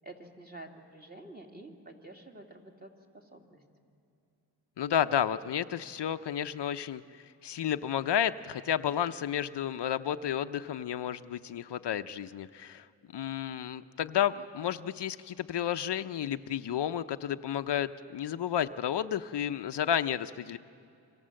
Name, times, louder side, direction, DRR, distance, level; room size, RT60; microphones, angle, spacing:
voice 1, 0.0-3.6, right 2 dB, 20° right, 2 dB, 2.8 m, -49 dB
voice 2, 4.8-7.0 7.4-12.9 13.1-20.6, left 9 dB, 70° left, 10 dB, 0.7 m, -31 dB
29.0 x 25.5 x 7.7 m, 2.5 s
wide cardioid pair, 115°, 44 cm